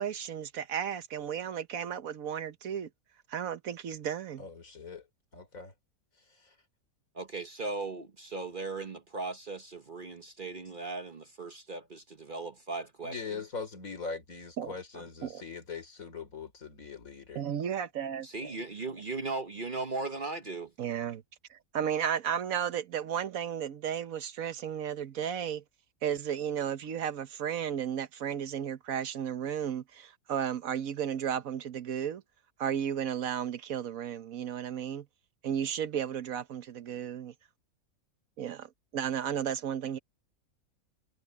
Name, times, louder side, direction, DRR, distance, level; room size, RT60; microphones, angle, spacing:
voice 1, 0.0-2.9 3.3-4.4 14.6-14.8 15.2-15.4 17.3-18.5 20.8-21.2 21.5-25.6 26.0-32.2 32.6-35.1 35.4-37.3 38.4-40.0, right 9 dB, 70° right, 1.3 m, -34 dB
voice 2, 4.4-5.0 5.3-5.7 6.3-6.6 13.0-17.4, left 5 dB, 65° left, 3.9 m, -41 dB
voice 3, 7.1-13.4 14.9-15.0 18.2-20.7, right 3 dB, 40° right, 1.1 m, -38 dB
omnidirectional pair, 1.5 m